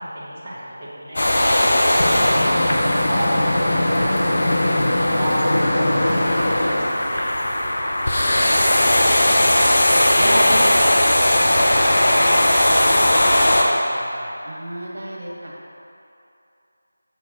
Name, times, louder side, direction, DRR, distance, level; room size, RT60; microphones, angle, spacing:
voice 1, 0.0-2.1 2.5-4.7 4.9-14.3, equal, 5° right, -17 dB, 1.1 m, -34 dB
sound 1, 1.2-13.6, left 1 dB, 50° left, 0.8 m, -18 dB
voice 2, 10.2-10.9 14.5-15.5, right 1 dB, 65° right, -4 dB, 1.5 m, -29 dB
6.8 x 5.9 x 3.7 m, 2.7 s
figure-of-eight pair, 175°, 0 cm